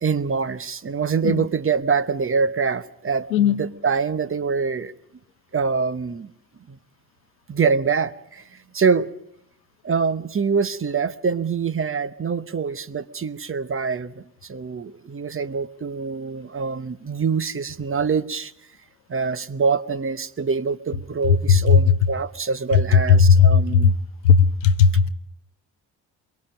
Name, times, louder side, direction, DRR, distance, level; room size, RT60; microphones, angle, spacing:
voice 1, 0.0-4.9 5.5-6.3 6.7-6.8 7.5-8.4 8.7-9.1 9.8-18.5 19.1-23.9, right 5 dB, 25° right, 15 dB, 0.9 m, -25 dB
voice 2, 3.3-3.6 21.5-21.8 23.3-23.9 24.2-25.1, left 6 dB, 90° left, 13 dB, 0.7 m, -16 dB
23.0 x 22.5 x 5.2 m, 0.74 s
hypercardioid pair, 45°, 49 cm